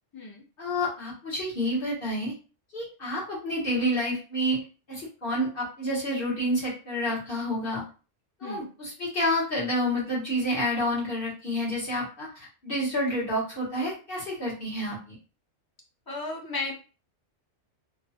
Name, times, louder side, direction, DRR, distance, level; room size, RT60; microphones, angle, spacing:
voice 1, 0.6-2.3 2.7-4.6 4.9-7.8 8.4-15.1, equal, 55° left, -7 dB, 1.4 m, -29 dB
voice 2, 16.1-16.7, left 3 dB, 30° left, -1 dB, 0.5 m, -34 dB
3.1 x 2.1 x 2.7 m, 0.34 s
omnidirectional pair, 1.2 m